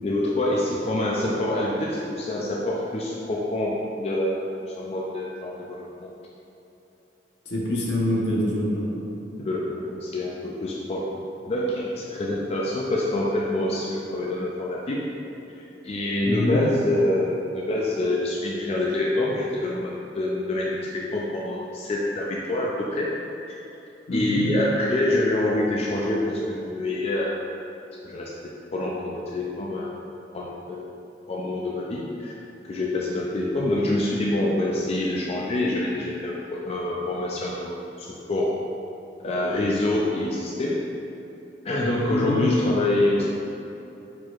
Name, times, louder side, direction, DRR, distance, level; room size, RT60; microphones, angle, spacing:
voice 1, 0.0-5.8 9.4-11.1 11.5-15.1 15.6-23.2 23.5-23.6 24.1-27.4 28.0-28.3 28.7-29.9 30.3-30.9 31.3-32.3 32.7-38.5 39.2-40.8 41.6-43.2, left 1 dB, 35° left, -3 dB, 0.4 m, -26 dB
voice 2, 7.5-8.9 16.3-16.6 24.1-24.4 42.1-42.4, left 1 dB, 75° left, -4 dB, 0.9 m, -25 dB
4.4 x 4.4 x 2.4 m, 2.9 s
head